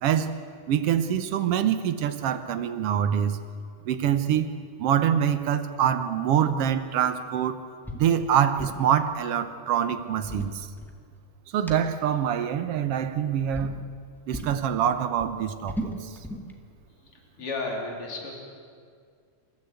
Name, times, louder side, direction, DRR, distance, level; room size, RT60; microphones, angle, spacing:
voice 1, 0.0-0.3 0.7-3.4 3.8-7.6 7.9-10.7 11.5-13.8 14.3-16.2, right 9 dB, 65° right, 9 dB, 1.6 m, -25 dB
sound 1, 7.8-8.1 8.4-8.9 10.0-11.2 11.7-11.8 12.8-13.2 13.5-13.8 14.3-14.6 15.0-16.5, equal, ahead, 0.9 m, -36 dB
voice 2, 17.1-18.3, left 3 dB, 45° left, -1 dB, 4.3 m, -33 dB
29.0 x 14.0 x 8.3 m, 2.1 s
omnidirectional pair, 3.5 m